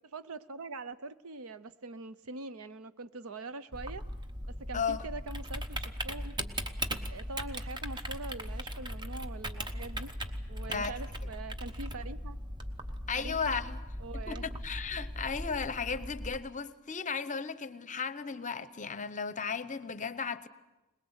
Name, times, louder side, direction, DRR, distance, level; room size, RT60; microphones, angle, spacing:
voice 1, 0.1-4.0 4.5-6.4 7.1-12.4 13.1-13.6 14.0-14.6, right 3 dB, 70° right, 0.7 m, -43 dB
Typing, 3.7-16.4, equal, 20° right, 1.0 m, -39 dB
voice 2, 4.7-5.0 10.7-10.9 13.1-13.8 14.3-20.5, left 5 dB, 35° left, 0.8 m, -35 dB
22.0 x 20.5 x 8.1 m
head